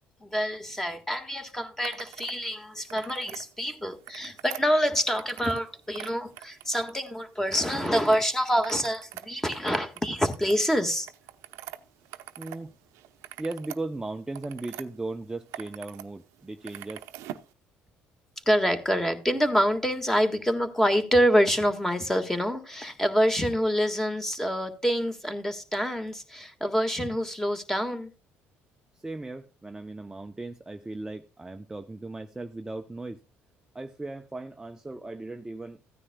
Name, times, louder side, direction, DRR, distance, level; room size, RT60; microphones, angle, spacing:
voice 1, 0.2-11.1 18.4-28.1, equal, 10° left, 1.6 m, -26 dB
sound 1, 1.8-2.4 2.7-3.4 3.9-5.6 5.9-7.1 7.5-8.2 8.5-12.6 12.9-14.8 15.3-16.0 16.3-17.5, right 14 dB, 80° right, 0.7 m, -43 dB
voice 2, 12.4-12.8 13.4-17.1 28.9-33.2 33.7-35.8, right 2 dB, 10° right, 0.6 m, -37 dB
15.5 x 9.7 x 2.2 m
cardioid pair, 95°, 5 cm